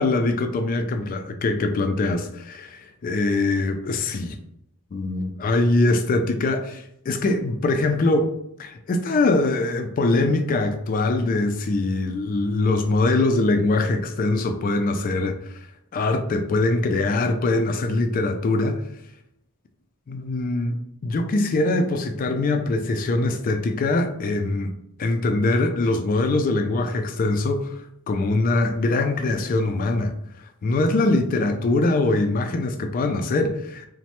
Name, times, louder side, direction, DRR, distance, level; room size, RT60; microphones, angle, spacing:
voice 1, 0.0-4.4 4.9-8.3 8.6-15.6 15.9-18.8 20.1-30.1 30.6-33.9, left 2 dB, 40° left, 0.3 m, -23 dB
3.0 x 2.1 x 2.9 m
head